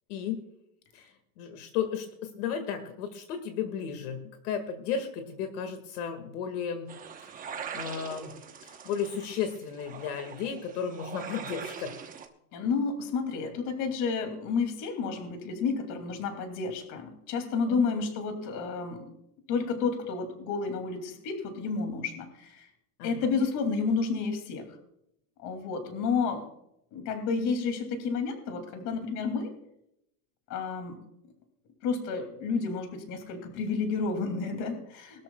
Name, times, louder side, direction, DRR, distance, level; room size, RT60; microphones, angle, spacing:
voice 1, 0.9-6.9 7.2-8.3 8.6-11.9 17.7-17.8 23.0-23.3, left 7 dB, 70° left, 6 dB, 2.0 m, -34 dB
sound 1, 6.9-12.3, right 7 dB, 15° right, 1.0 m, -42 dB
voice 2, 12.5-19.1 19.5-22.7 23.0-24.6 25.4-26.5 26.9-29.5 30.5-31.0 31.8-35.2, left 4 dB, 40° left, 6 dB, 2.6 m, -31 dB
21.5 x 13.0 x 2.3 m, 0.79 s
supercardioid pair, 155°, 47 cm